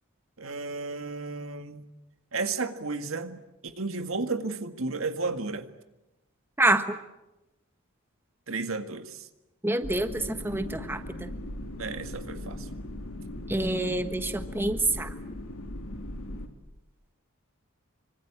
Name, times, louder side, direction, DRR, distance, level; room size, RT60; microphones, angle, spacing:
voice 1, 0.4-1.8 2.3-5.7 8.5-9.3 11.8-12.7, right 3 dB, 70° right, 1.9 m, -33 dB
voice 2, 6.6-7.0 9.6-11.3 13.5-15.1, right 2 dB, 10° right, 1.3 m, -27 dB
sound 1, 9.8-16.5, left 1 dB, 75° left, 3.2 m, -39 dB
26.0 x 25.0 x 8.8 m
head